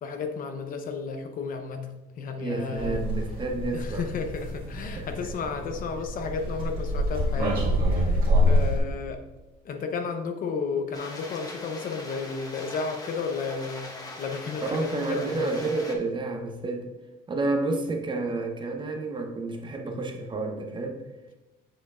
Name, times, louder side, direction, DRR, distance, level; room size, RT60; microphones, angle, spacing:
voice 1, 0.0-3.0 3.7-7.6 7.9-9.2 9.6-15.5, left 5 dB, 55° left, 6 dB, 0.7 m, -33 dB
voice 2, 2.4-4.1 4.9-5.1 8.0-8.3 14.6-16.9 17.3-21.0, right 3 dB, 30° right, 4 dB, 0.8 m, -30 dB
sound 1, 2.8-8.8, equal, 55° right, 1.9 m, -26 dB
sound 2, 10.9-16.0, left 2 dB, 20° left, 1.0 m, -41 dB
7.7 x 6.5 x 2.4 m, 1.1 s
cardioid pair, 110°, 17 cm